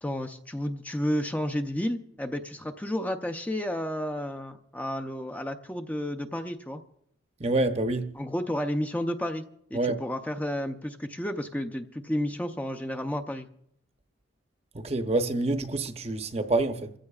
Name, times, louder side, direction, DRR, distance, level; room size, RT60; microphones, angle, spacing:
voice 1, 0.0-6.8 8.1-9.4 9.7-13.5, equal, 10° left, 0.6 m, -31 dB
voice 2, 7.4-8.1 9.7-10.0 14.7-16.9, right 2 dB, 35° right, 0.7 m, -27 dB
28.0 x 15.0 x 2.4 m
head